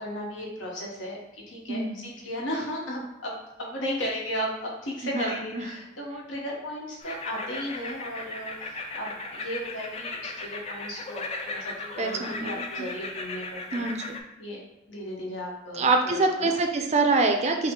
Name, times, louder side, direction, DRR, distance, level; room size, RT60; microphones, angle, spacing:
voice 1, 0.0-3.3 3.6-13.9 14.4-14.6 14.9-16.6, equal, 85° left, -2 dB, 1.2 m, -35 dB
voice 2, 5.0-5.6 12.0-12.6 13.7-14.2 15.8-17.7, right 3 dB, 35° right, 4 dB, 0.5 m, -25 dB
sound 1, 7.0-14.2, left 3 dB, 35° left, 0.4 m, -37 dB
5.3 x 2.0 x 3.7 m, 0.94 s
head